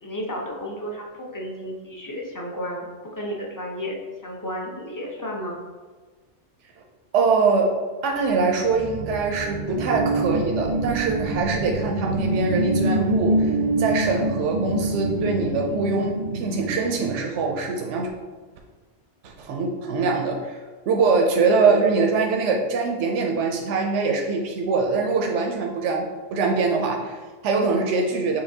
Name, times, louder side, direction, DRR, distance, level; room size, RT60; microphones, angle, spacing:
voice 1, 0.0-2.9 3.1-5.6, equal, 20° left, -1 dB, 0.6 m, -32 dB
voice 2, 7.1-7.7 8.0-18.1 19.2-20.6 20.9-28.4, right 4 dB, 90° right, 1 dB, 0.9 m, -23 dB
sound 1, 8.5-17.7, right 2 dB, 55° right, 0.5 m, -26 dB
6.7 x 2.9 x 2.7 m, 1.4 s
omnidirectional pair, 1.2 m